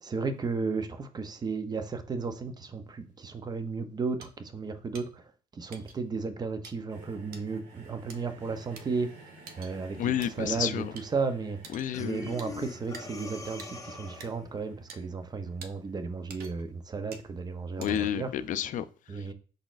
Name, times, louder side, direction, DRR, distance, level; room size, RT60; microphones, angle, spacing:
voice 1, 0.0-5.2 5.5-9.1 9.6-10.0 10.4-10.8 11.1-11.6 12.0-18.3 19.1-19.3, right 4 dB, 25° right, 0.5 m, -34 dB
sound 1, 4.2-4.3 4.9-5.1 5.7-6.0 6.6-6.7 7.3-7.4 8.1-8.2 8.8-8.9 9.5-9.7 10.2-10.3 11.0-11.1 11.6-11.9 12.4-12.5 12.9-13.1 13.6-13.7 14.2-14.3 14.9-15.0 15.6-15.7 16.3-16.7 17.1-17.3 17.8-18.2, right 5 dB, 65° right, 0.6 m, -46 dB
sound 2, 6.9-17.1 18.0-18.1, right 3 dB, 85° right, 2.1 m, -54 dB
voice 2, 10.0-10.9 11.7-12.4 17.8-19.3, left 10 dB, 50° left, 0.4 m, -31 dB
Breathing, 11.9-14.5, left 3 dB, 20° left, 0.7 m, -42 dB
5.0 x 3.9 x 2.4 m
cardioid pair, 110°, 17 cm